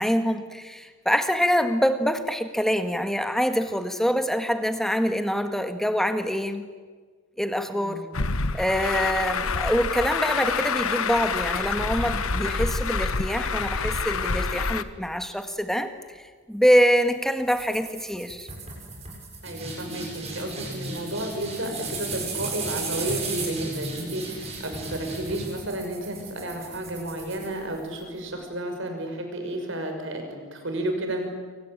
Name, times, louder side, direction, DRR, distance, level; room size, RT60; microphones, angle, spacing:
voice 1, 0.0-6.7 7.4-8.0 8.5-15.9 16.5-18.5, equal, ahead, 8 dB, 1.6 m, -25 dB
voice 2, 7.7-8.0 19.4-31.3, right 1 dB, 55° right, 4 dB, 6.2 m, -32 dB
Truck, 8.1-14.8, left 4 dB, 75° left, 1.3 m, -27 dB
sound 1, 17.5-28.0, right 3 dB, 30° right, 7.4 m, -35 dB
27.0 x 24.5 x 8.9 m, 1.5 s
head